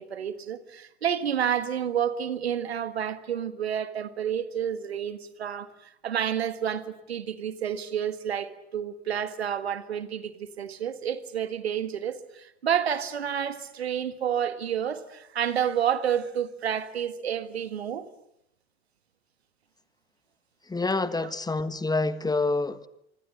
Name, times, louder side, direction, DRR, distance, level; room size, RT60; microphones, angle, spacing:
voice 1, 0.0-18.1 21.2-21.3, right 9 dB, 75° right, 1.8 m, -30 dB
voice 2, 20.7-22.9, left 3 dB, 10° left, 1.5 m, -27 dB
26.5 x 25.5 x 8.7 m
figure-of-eight pair, 70°, 32 cm